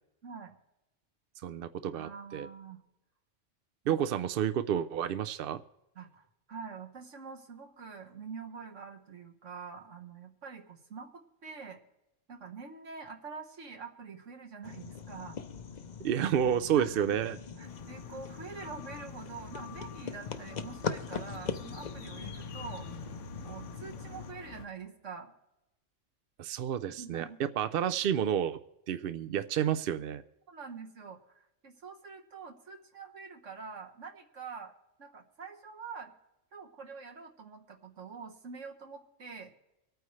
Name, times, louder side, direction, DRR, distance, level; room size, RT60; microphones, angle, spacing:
voice 1, 0.2-0.6 1.9-2.8 3.8-4.0 5.9-11.8 12.3-15.4 16.8-17.2 17.6-22.9 23.4-25.3 26.9-27.4 30.5-34.7 35.0-36.1 36.5-39.6, right 5 dB, 75° right, 2 dB, 1.7 m, -45 dB
voice 2, 1.4-2.5 3.9-5.6 16.0-17.4 26.4-28.6 28.9-30.2, right 9 dB, 60° right, 11 dB, 0.6 m, -30 dB
sound 1, 14.6-24.3, left 6 dB, 45° left, 0.7 m, -41 dB
sound 2, 17.6-24.7, left 4 dB, 75° left, 1.2 m, -47 dB
25.0 x 9.2 x 3.2 m, 0.95 s
omnidirectional pair, 1.3 m